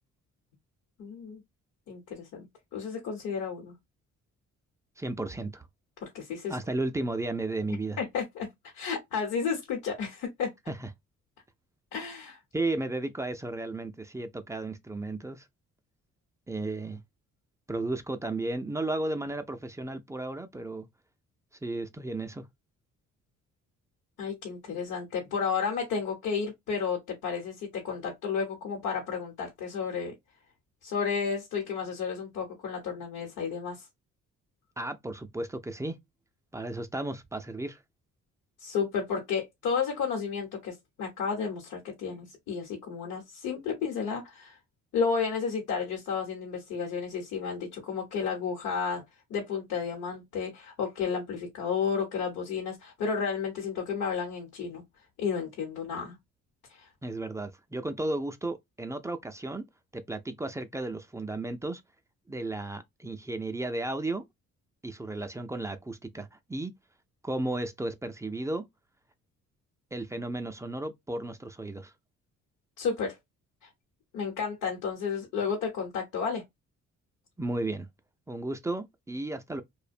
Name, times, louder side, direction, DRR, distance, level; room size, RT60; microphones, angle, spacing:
voice 1, 1.0-1.4 1.9-2.5 2.7-3.7 6.0-6.6 8.0-8.5 8.7-10.5 11.9-12.4 24.2-30.1 30.8-33.8 38.6-44.6 44.9-49.0 49.3-54.8 55.2-56.2 56.7-56.9 72.8-73.2 74.1-76.4, left 6 dB, 85° left, 0.9 m, -32 dB
voice 2, 5.0-5.7 6.5-8.0 10.7-10.9 12.5-15.4 16.5-17.0 17.7-20.9 21.6-22.4 34.8-36.0 36.5-37.8 57.0-59.6 59.9-61.8 62.3-64.2 64.8-66.7 67.2-68.6 69.9-71.9 77.4-77.9 78.3-79.6, right 2 dB, 10° right, 0.3 m, -34 dB
2.5 x 2.1 x 2.4 m
cardioid pair, 90°, 30 cm